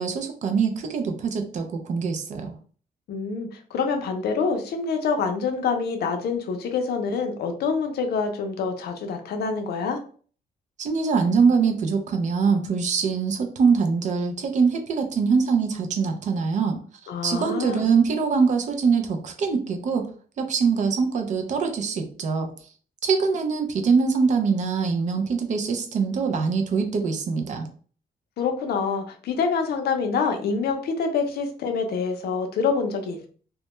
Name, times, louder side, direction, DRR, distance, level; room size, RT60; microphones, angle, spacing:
voice 1, 0.0-2.6 10.8-16.8 17.2-20.1 20.4-22.5 23.0-27.7, right 5 dB, 45° right, 6 dB, 0.4 m, -23 dB
voice 2, 3.1-10.0 17.1-17.9 28.4-33.3, left 5 dB, 70° left, 5 dB, 0.5 m, -26 dB
2.1 x 2.1 x 2.9 m, 0.43 s
wide cardioid pair, 170°, 17 cm